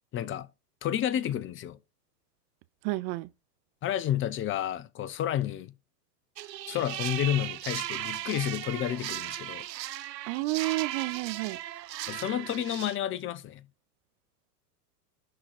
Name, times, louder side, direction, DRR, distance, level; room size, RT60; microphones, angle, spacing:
voice 1, 0.1-0.5 0.8-1.8 3.8-5.7 6.7-9.6 12.1-13.6, left 11 dB, 25° left, 0.7 m, -30 dB
voice 2, 2.8-3.3 10.3-11.6, right 21 dB, 40° right, 0.6 m, -30 dB
sound 1, 6.4-13.0, right 13 dB, 75° right, 1.1 m, -37 dB
11.5 x 3.9 x 5.8 m
hypercardioid pair, 115°, 50 cm